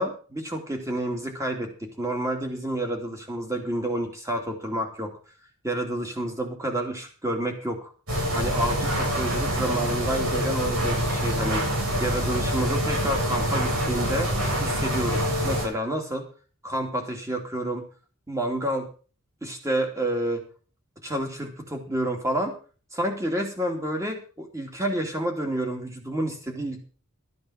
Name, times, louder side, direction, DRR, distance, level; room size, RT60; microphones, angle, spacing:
voice 1, 0.0-5.1 5.6-7.9 8.3-11.6 12.0-14.3 14.6-16.2 16.6-17.8 18.3-18.9 19.4-20.4 21.0-22.5 22.9-26.8, right 1 dB, 15° right, 3 dB, 2.7 m, -29 dB
sound 1, 8.1-15.6, equal, 85° right, 7.1 m, -26 dB
13.0 x 9.5 x 5.8 m, 0.38 s
head